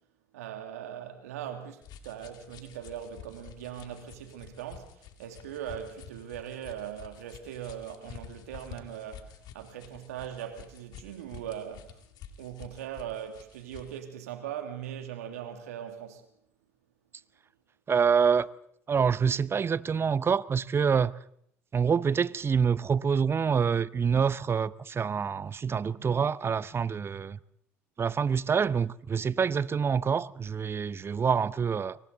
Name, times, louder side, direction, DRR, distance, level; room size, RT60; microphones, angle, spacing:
voice 1, 0.3-12.0 12.4-16.3, right 9 dB, 80° right, 2.7 m, -40 dB
wet rag rub, 1.8-14.0, left 8 dB, 60° left, 2.5 m, -49 dB
voice 2, 17.9-18.5 18.9-21.1 21.7-27.4 28.0-32.0, right 6 dB, 30° right, 0.8 m, -26 dB
29.5 x 23.5 x 4.1 m
hypercardioid pair, 70°, 8 cm